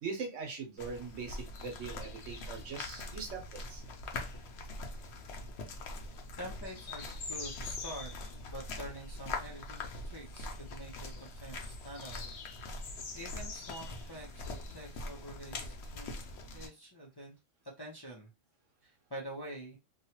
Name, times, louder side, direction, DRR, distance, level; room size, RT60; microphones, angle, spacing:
voice 1, 0.0-3.8, right 5 dB, 85° right, 1.3 m, -41 dB
sound 1, 0.8-16.7, left 2 dB, 65° left, 0.9 m, -42 dB
voice 2, 6.4-8.1 8.5-12.2 13.1-16.1 16.5-17.4 17.8-18.3 18.8-19.8, right 1 dB, 30° left, 0.5 m, -46 dB
3.0 x 2.3 x 2.8 m
omnidirectional pair, 1.2 m